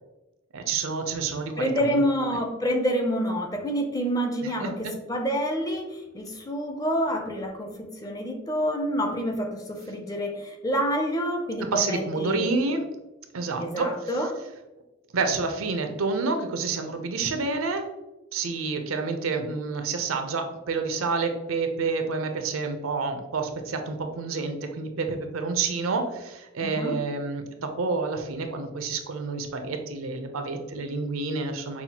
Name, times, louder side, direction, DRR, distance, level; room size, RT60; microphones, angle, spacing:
voice 1, 0.5-2.4 4.4-4.9 11.6-12.9 13.3-14.2 15.1-17.9 18.3-31.8, right 4 dB, 80° right, 6 dB, 0.6 m, -29 dB
voice 2, 1.6-12.5 13.6-14.3 26.6-27.0, equal, 20° left, 4 dB, 0.5 m, -28 dB
5.5 x 2.4 x 2.8 m, 1.0 s
head